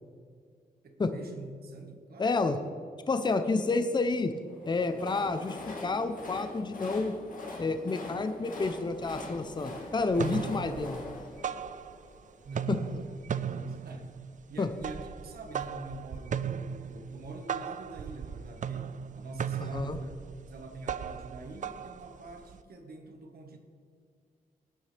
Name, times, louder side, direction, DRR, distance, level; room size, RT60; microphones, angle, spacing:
voice 1, 0.8-2.7 12.4-14.2 14.5-23.6, right 2 dB, 80° right, 4 dB, 1.5 m, -46 dB
voice 2, 2.2-2.6 3.1-4.4 4.7-7.1 7.6-11.0 12.7-12.8 14.6-14.7 19.6-20.0, left 3 dB, 30° left, 9 dB, 0.7 m, -29 dB
Train, 4.5-12.6, left 2 dB, 60° left, 2.3 m, -43 dB
sound 1, 8.6-8.7 9.1-9.7 10.0-12.2 12.5-22.6, right 7 dB, 55° right, 0.4 m, -37 dB
17.0 x 9.6 x 3.4 m, 2.2 s
cardioid pair, 95°, 16 cm